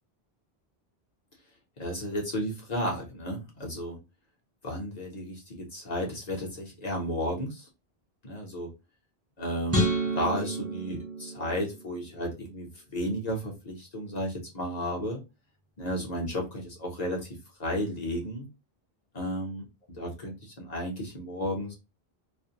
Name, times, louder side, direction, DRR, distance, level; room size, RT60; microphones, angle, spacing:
voice 1, 1.8-4.0 4.6-7.7 8.2-8.7 9.4-15.2 15.8-17.3 17.6-18.5 19.1-19.7 20.0-21.7, equal, 45° left, -1 dB, 0.8 m, -33 dB
sound 1, 9.7-12.1, right 1 dB, 15° right, 0.7 m, -30 dB
2.5 x 2.1 x 2.7 m, 0.27 s
omnidirectional pair, 1.1 m